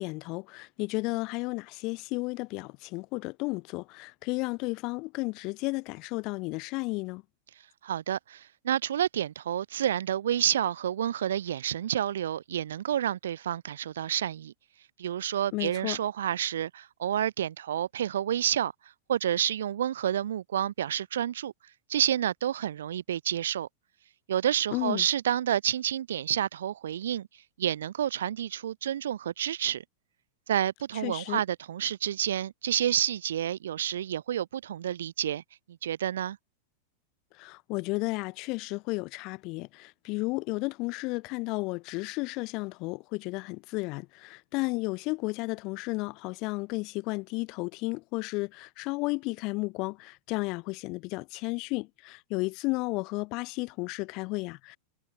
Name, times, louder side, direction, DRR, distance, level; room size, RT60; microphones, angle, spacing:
voice 1, 0.0-7.2 15.5-16.0 24.7-25.0 31.0-31.4 37.4-54.8, left 25 dB, 40° left, 0.5 m, -33 dB
voice 2, 7.8-14.5 15.0-18.7 19.1-21.5 21.9-23.7 24.3-27.3 27.6-29.8 30.5-35.4 35.8-36.4, right 10 dB, 60° right, 0.4 m, -29 dB
figure-of-eight pair, 90°, 0 cm